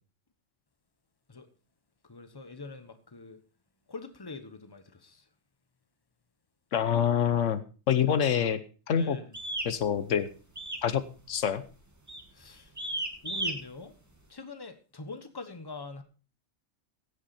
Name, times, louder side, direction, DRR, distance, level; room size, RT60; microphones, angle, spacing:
voice 1, 2.0-3.4 3.9-5.3 8.1-8.2 9.0-9.4 12.3-12.7 13.2-13.9 14.3-16.0, left 3 dB, 20° left, 1.2 m, -43 dB
voice 2, 6.7-7.6 7.9-8.6 8.9-9.2 9.6-10.3 10.8-11.0 11.3-11.6, left 8 dB, 80° left, 1.2 m, -26 dB
sound 1, 9.3-9.7 10.6-10.9 11.2-11.5 12.1-12.3 12.8-13.5, right 1 dB, 15° right, 1.7 m, -33 dB
16.0 x 8.5 x 4.3 m
omnidirectional pair, 1.3 m